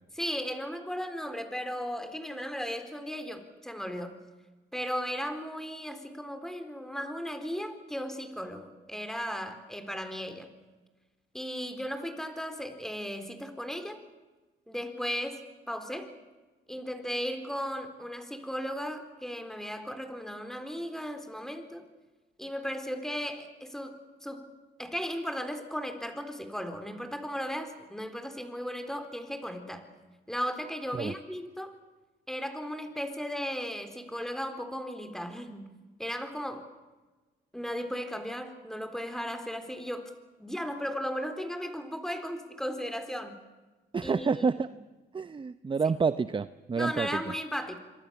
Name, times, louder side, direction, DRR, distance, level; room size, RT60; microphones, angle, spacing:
voice 1, 0.1-4.2 4.7-10.5 11.3-14.0 14.7-16.1 16.7-21.8 22.4-23.9 24.2-24.5 24.8-29.9 30.3-31.8 32.3-35.7 36.0-36.6 37.5-40.1 40.4-43.3 44.0-44.3 46.8-47.8, equal, ahead, 8 dB, 4.0 m, -36 dB
voice 2, 43.9-44.7 45.1-47.3, right 5 dB, 25° right, 13 dB, 0.7 m, -29 dB
26.5 x 23.5 x 7.1 m, 1.2 s
cardioid pair, 90°, 20 cm